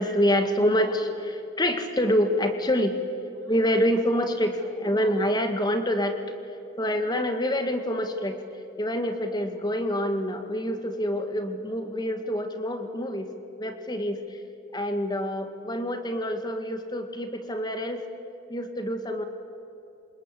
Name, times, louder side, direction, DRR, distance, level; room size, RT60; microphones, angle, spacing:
voice 1, 0.0-6.2 6.8-8.4 8.8-13.3 13.6-14.4 14.7-18.0 18.5-19.2, equal, 20° left, 7 dB, 1.9 m, -26 dB
27.0 x 20.0 x 8.5 m, 2.8 s
head